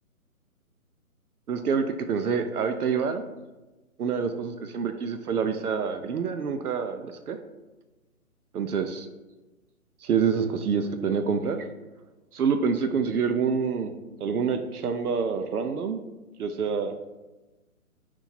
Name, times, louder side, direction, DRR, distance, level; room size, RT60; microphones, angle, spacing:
voice 1, 1.5-3.2 4.0-7.4 8.5-9.1 10.0-11.7 12.3-13.9 14.2-16.0 16.4-16.9, right 6 dB, 80° right, 7 dB, 0.6 m, -27 dB
4.4 x 2.8 x 4.2 m, 1.1 s
hypercardioid pair, 150°, 44 cm